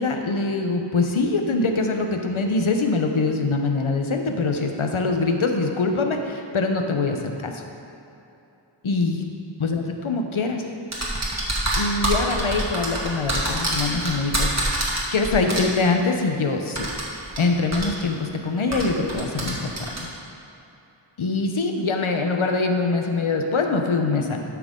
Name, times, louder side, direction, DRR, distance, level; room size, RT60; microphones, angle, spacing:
voice 1, 0.0-7.6 8.8-9.2 9.6-10.6 11.7-16.9 17.4-19.7 20.0-20.1 21.2-24.4, left 3 dB, 85° left, 4 dB, 0.8 m, -23 dB
sound 1, 10.9-15.6 16.7-17.4 17.7-17.9 18.7-20.0, right 1 dB, 35° right, 1.8 m, -25 dB
12.5 x 6.0 x 3.7 m, 2.8 s
wide cardioid pair, 45°, 48 cm